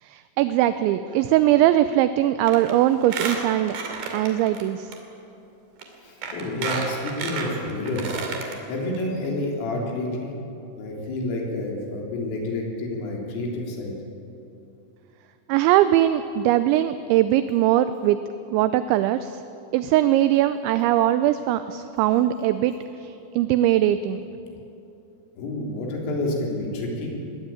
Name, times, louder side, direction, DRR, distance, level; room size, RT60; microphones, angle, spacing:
voice 1, 0.0-3.8 4.1-4.9 15.5-18.2 18.5-19.4 19.7-24.2, right 13 dB, 80° right, 11 dB, 2.8 m, -21 dB
Squeak, 2.5-2.7 3.0-4.6 4.9-5.0 5.8-5.9 6.2-8.5 8.9-9.0 9.2-9.3, right 5 dB, 55° right, 4.1 m, -31 dB
voice 2, 6.0-10.3 10.7-13.9 25.4-27.1, left 2 dB, 85° left, -1 dB, 6.2 m, -29 dB
21.5 x 20.0 x 9.0 m, 2.8 s
omnidirectional pair, 5.7 m